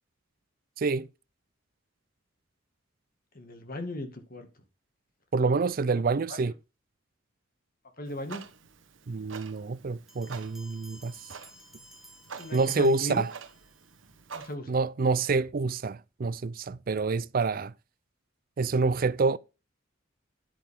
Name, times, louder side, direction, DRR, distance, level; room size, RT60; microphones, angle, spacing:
voice 1, 0.8-1.1 5.3-6.5 9.1-11.2 12.5-13.3 14.7-17.7 18.6-19.4, right 4 dB, 45° right, 0.5 m, -27 dB
voice 2, 3.3-4.5 5.8-5.9 6.3-6.4 8.0-8.4 12.4-13.2 14.3-14.8, left 1 dB, 45° left, 2.2 m, -37 dB
Clock, 8.1-14.5, right 5 dB, 70° right, 1.2 m, -47 dB
Bell, 10.1-13.9, equal, ahead, 1.6 m, -53 dB
10.0 x 8.7 x 3.7 m
head